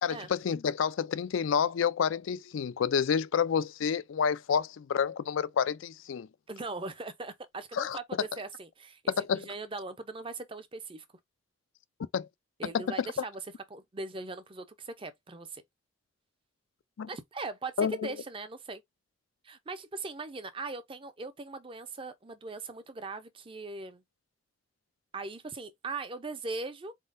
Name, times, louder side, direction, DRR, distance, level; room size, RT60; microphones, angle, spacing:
voice 1, 0.0-6.3 7.7-8.0 9.1-9.5 12.1-12.3 12.6-13.1 17.0-17.1 17.8-18.1, left 7 dB, 80° left, 0.4 m, -29 dB
voice 2, 6.5-11.0 12.6-13.4 13.7-15.6 17.1-18.8 19.4-24.0 25.1-26.9, right 3 dB, 25° right, 0.6 m, -40 dB
4.1 x 3.6 x 2.5 m
head